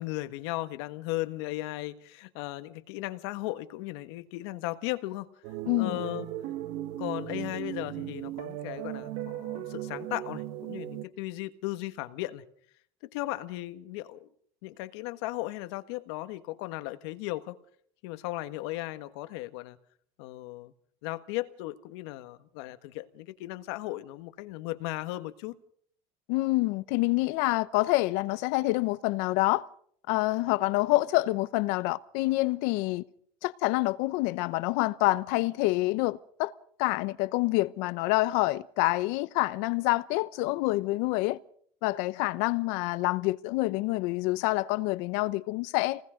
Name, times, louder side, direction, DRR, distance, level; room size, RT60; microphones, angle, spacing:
voice 1, 0.0-5.3 5.8-6.3 7.0-12.4 13.0-14.3 14.6-17.6 18.0-19.8 20.2-20.7 21.0-25.6, left 18 dB, 85° left, 1.5 m, -36 dB
sound 1, 5.4-11.0, right 13 dB, 60° right, 1.5 m, -37 dB
voice 2, 5.7-6.0 26.3-29.6 30.1-33.0 33.4-36.5 36.8-41.4 41.8-46.0, left 20 dB, 70° left, 0.9 m, -27 dB
28.0 x 19.5 x 5.2 m
cardioid pair, 165°, 13 cm